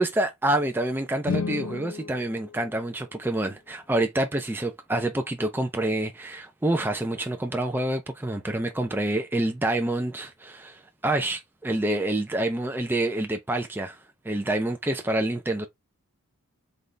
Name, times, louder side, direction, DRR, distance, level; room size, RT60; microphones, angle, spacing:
voice 1, 0.0-14.0 14.2-15.7, right 1 dB, 10° right, 0.5 m, -27 dB
sound 1, 1.2-3.4, left 5 dB, 70° left, 0.9 m, -34 dB
3.9 x 3.2 x 3.3 m
head